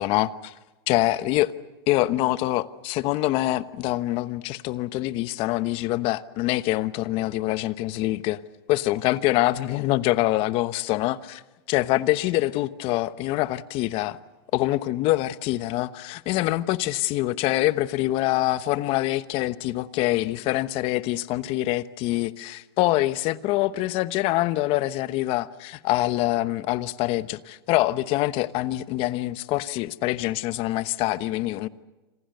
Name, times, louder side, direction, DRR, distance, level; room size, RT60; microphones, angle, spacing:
voice 1, 0.0-0.5 0.9-1.5 1.9-8.4 8.7-11.4 11.7-14.2 14.5-31.7, left 16 dB, 45° left, 1.1 m, -25 dB
27.5 x 26.0 x 6.7 m
supercardioid pair, 130°, 13 cm